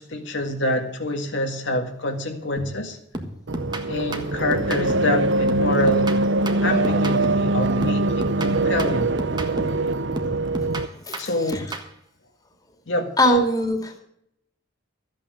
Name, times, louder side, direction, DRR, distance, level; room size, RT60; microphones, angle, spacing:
voice 1, 0.0-3.0 3.9-6.1 6.6-9.1 10.3-10.4 11.2-11.7 12.9-13.2, left 1 dB, 65° left, 3 dB, 1.8 m, -26 dB
sound 1, 2.6-2.8 3.1-5.2 5.5-7.5 7.8-9.9 10.2-11.9, right 1 dB, 20° right, 1.5 m, -33 dB
sound 2, 3.5-10.9, right 2 dB, 65° right, 0.8 m, -23 dB
voice 2, 10.9-11.6 13.2-14.0, equal, 20° left, 4 dB, 2.4 m, -22 dB
14.0 x 8.6 x 6.6 m, 0.72 s
head